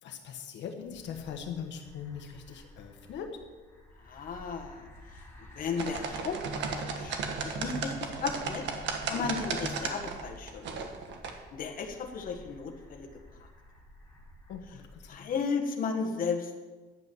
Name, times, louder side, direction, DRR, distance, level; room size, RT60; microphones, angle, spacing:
voice 1, 0.0-3.4 14.5-15.3, left 7 dB, 80° left, 4 dB, 1.4 m, -41 dB
sound 1, 0.9-15.3, left 1 dB, 15° left, 4.0 m, -54 dB
voice 2, 4.0-4.9 5.5-6.4 6.7-7.2 7.4-8.7 9.0-10.8 11.5-13.1 15.1-16.5, left 5 dB, 50° left, 2 dB, 1.5 m, -34 dB
sound 2, 5.8-11.3, right 5 dB, 80° right, 1.6 m, -35 dB
10.5 x 8.3 x 7.7 m, 1.3 s
cardioid pair, 165°, 18 cm